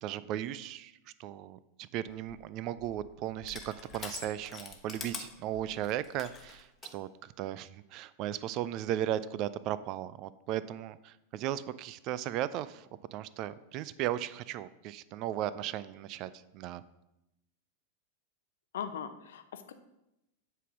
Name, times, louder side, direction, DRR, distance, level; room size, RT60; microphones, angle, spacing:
voice 1, 0.0-0.9 1.2-16.8, right 12 dB, 40° right, 16 dB, 0.3 m, -36 dB
Crushing, 2.1-7.0, left 5 dB, 20° left, 1.1 m, -46 dB
voice 2, 18.7-19.7, left 8 dB, 60° left, 9 dB, 0.7 m, -39 dB
8.1 x 3.7 x 6.1 m, 0.88 s
figure-of-eight pair, 90°, 0 cm